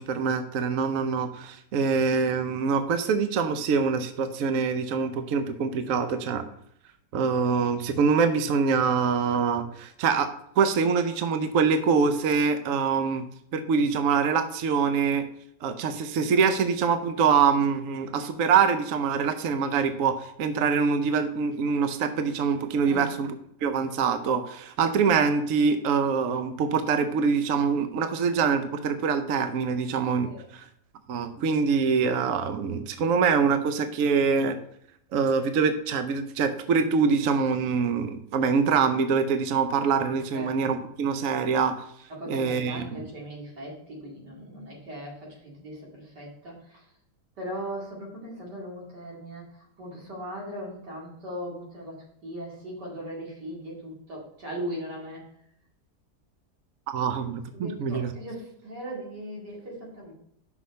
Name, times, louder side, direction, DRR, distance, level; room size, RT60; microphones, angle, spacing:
voice 1, 0.0-6.5 7.1-10.3 10.6-13.2 13.5-15.3 15.6-23.3 23.6-30.6 31.1-34.6 35.1-41.7 42.3-42.8 56.9-58.1, right 5 dB, 60° right, 8 dB, 1.0 m, -24 dB
voice 2, 22.8-23.2 30.2-30.5 40.3-40.6 42.1-46.8 47.4-55.3 57.0-57.1 57.5-60.1, equal, 85° right, -3 dB, 3.1 m, -39 dB
6.1 x 5.7 x 5.2 m, 0.72 s
omnidirectional pair, 1.8 m